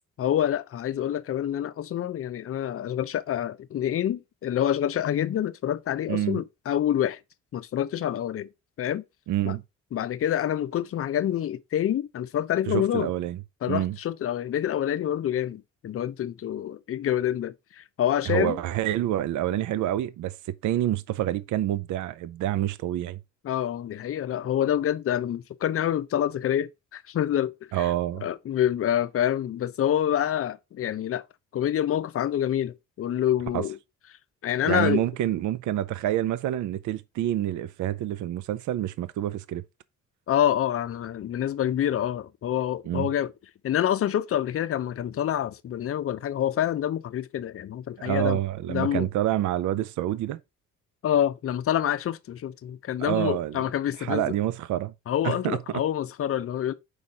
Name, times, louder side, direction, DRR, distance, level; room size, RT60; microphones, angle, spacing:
voice 1, 0.2-7.2 7.5-8.5 8.8-9.0 9.4-9.6 9.9-13.1 13.6-18.6 23.4-27.5 27.8-27.9 28.2-31.2 31.5-33.8 34.4-35.0 40.3-43.3 43.6-48.4 48.7-49.1 51.0-54.2 55.1-56.7, left 10 dB, 50° left, 0.6 m, -27 dB
voice 2, 6.1-6.4 9.3-9.6 12.7-13.4 13.7-14.0 18.3-20.4 20.6-23.2 27.7-28.3 33.5-33.6 34.7-39.6 42.9-43.1 48.0-50.4 53.0-53.6 54.0-54.9 55.2-55.8, right 13 dB, 75° right, 0.5 m, -27 dB
4.8 x 4.1 x 4.8 m
cardioid pair, 90°, 30 cm